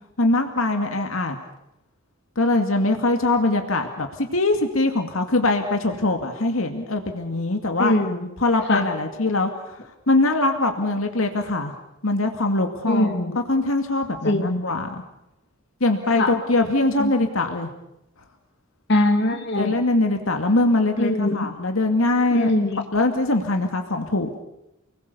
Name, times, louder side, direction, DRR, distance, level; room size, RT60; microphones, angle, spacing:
voice 1, 0.2-1.4 2.4-7.9 8.4-9.8 10.1-11.7 12.0-13.1 13.5-15.0 15.8-17.7 19.6-22.5 22.9-24.4, left 2 dB, 85° left, 5 dB, 2.3 m, -22 dB
voice 2, 7.8-8.3 8.7-8.9 12.9-13.4 14.2-14.7 16.2-16.3 17.0-17.1 18.9-19.7 21.0-21.5 22.3-22.8, left 1 dB, 55° left, 4 dB, 3.0 m, -22 dB
29.5 x 20.5 x 6.9 m, 0.85 s
head